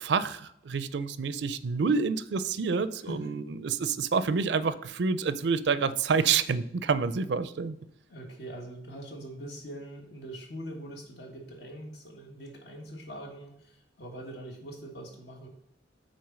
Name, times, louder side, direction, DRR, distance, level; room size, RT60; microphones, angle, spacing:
voice 1, 0.0-7.8, right 5 dB, 70° right, 14 dB, 0.4 m, -28 dB
voice 2, 8.1-15.5, right 1 dB, 65° left, 2 dB, 1.6 m, -42 dB
6.2 x 4.2 x 6.0 m, 0.74 s
head